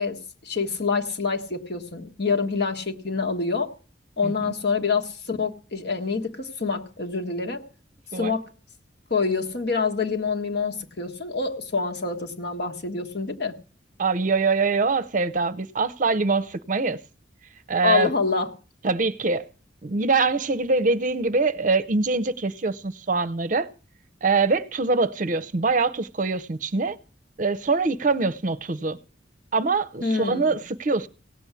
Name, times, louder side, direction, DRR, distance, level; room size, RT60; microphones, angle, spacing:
voice 1, 0.0-3.7 4.2-7.6 8.1-8.4 9.1-13.6 17.8-18.5 30.0-30.6, left 4 dB, 60° left, 1.6 m, -26 dB
voice 2, 14.0-17.0 17.7-18.1 18.8-19.5 19.8-23.7 24.2-27.0 27.4-29.0 29.5-31.1, right 4 dB, 45° right, 0.6 m, -23 dB
17.0 x 7.0 x 8.3 m
head